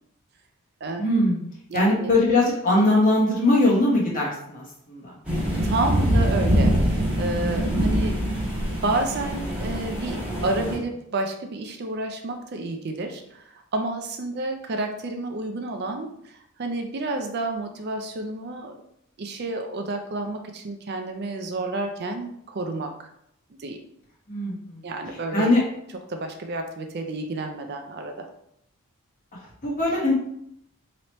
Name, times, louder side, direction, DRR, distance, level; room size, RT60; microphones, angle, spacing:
voice 1, 1.0-1.4 1.7-5.1 24.3-24.8 25.3-25.6 29.6-30.1, left 1 dB, 35° left, -4 dB, 1.2 m, -21 dB
voice 2, 1.7-2.1 5.6-8.2 8.6-13.4 13.7-16.3 16.6-18.8 19.2-22.9 23.6-23.8 24.8-25.5 26.1-28.3, right 2 dB, 50° right, 5 dB, 0.4 m, -30 dB
sound 1, 5.2-10.8, equal, 5° right, 1.3 m, -24 dB
3.1 x 2.9 x 4.2 m, 0.74 s
head